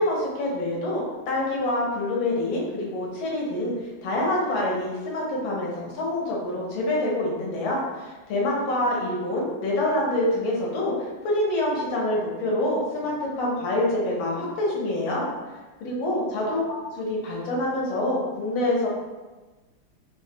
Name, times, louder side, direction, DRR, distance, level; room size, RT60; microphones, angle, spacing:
voice 1, 0.0-3.7 4.0-15.3 15.8-18.9, left 1 dB, 75° left, -3 dB, 1.5 m, -26 dB
3.7 x 2.0 x 2.7 m, 1.2 s
omnidirectional pair, 2.2 m